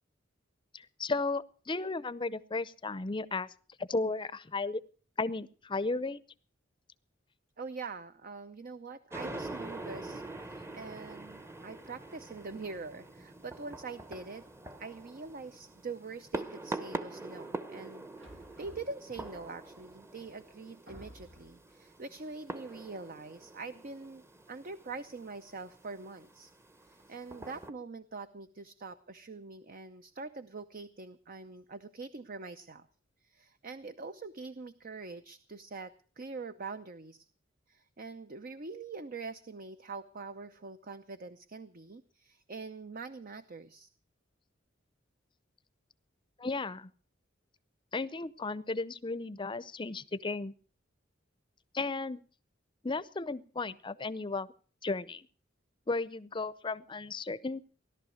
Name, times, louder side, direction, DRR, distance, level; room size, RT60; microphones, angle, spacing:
voice 1, 0.7-3.5 3.8-4.8 5.2-6.2 46.4-46.9 47.9-50.5 51.7-52.2 52.8-54.5 54.8-55.3 55.9-57.6, left 3 dB, 25° left, 17 dB, 0.6 m, -34 dB
voice 2, 7.6-14.5 14.8-26.5 26.9-32.9 33.2-37.3 37.7-43.9, right 4 dB, 50° right, 11 dB, 0.7 m, -44 dB
sound 1, 9.1-27.7, right 2 dB, 15° right, 0.9 m, -44 dB
sound 2, 18.2-19.7 20.3-20.4 20.9-21.7, equal, 85° right, 3.0 m, -53 dB
17.0 x 11.5 x 6.4 m, 0.43 s
head